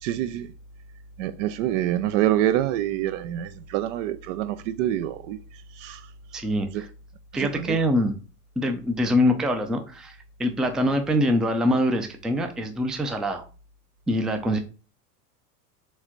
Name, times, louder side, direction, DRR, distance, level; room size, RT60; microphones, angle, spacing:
voice 1, 0.0-0.5 1.2-6.1 6.7-6.9 7.3-7.8, right 12 dB, 55° right, 0.5 m, -26 dB
voice 2, 6.3-6.7 7.3-8.1 8.6-13.5 14.1-14.6, equal, ahead, 0.4 m, -24 dB
4.6 x 3.4 x 3.0 m
hypercardioid pair, 85°, 46 cm